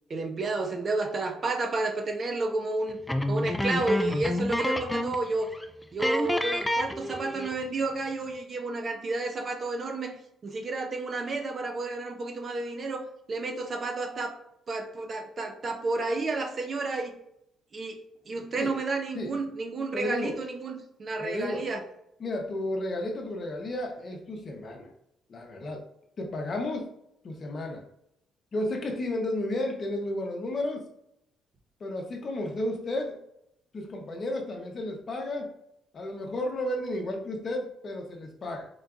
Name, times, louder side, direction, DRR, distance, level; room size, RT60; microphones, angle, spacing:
voice 1, 0.1-3.0 3.3-5.5 5.9-10.2 10.4-14.3 14.7-17.1 17.7-18.0 18.3-21.8, right 3 dB, 40° right, 4 dB, 0.6 m, -31 dB
sound 1, 3.1-5.3 5.5-5.7 6.0-7.6, left 1 dB, 5° left, 0.3 m, -29 dB
voice 2, 19.9-20.4 21.2-21.6 22.2-24.9 25.3-25.8 26.2-26.9 27.2-27.8 28.5-30.9 31.8-33.2 33.7-35.5 35.9-38.7, left 1 dB, 45° left, 2 dB, 0.8 m, -32 dB
3.9 x 3.4 x 2.4 m, 0.77 s
cardioid pair, 110°, 0 cm